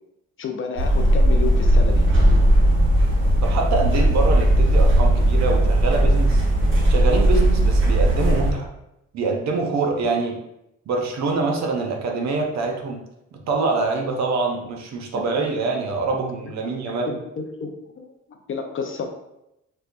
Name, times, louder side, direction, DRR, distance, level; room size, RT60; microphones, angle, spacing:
voice 1, 0.4-2.1 10.0-10.1 16.9-17.7 18.0-18.1 18.5-19.2, left 5 dB, 45° left, 4 dB, 0.5 m, -30 dB
sound 1, 0.8-8.5, right 1 dB, 40° right, 1.1 m, -17 dB
voice 2, 3.4-6.4 6.9-8.7 9.1-10.4 10.9-13.0 13.5-17.2, right 3 dB, 65° right, 2 dB, 0.7 m, -25 dB
4.4 x 2.2 x 2.5 m, 0.86 s
cardioid pair, 90°, 30 cm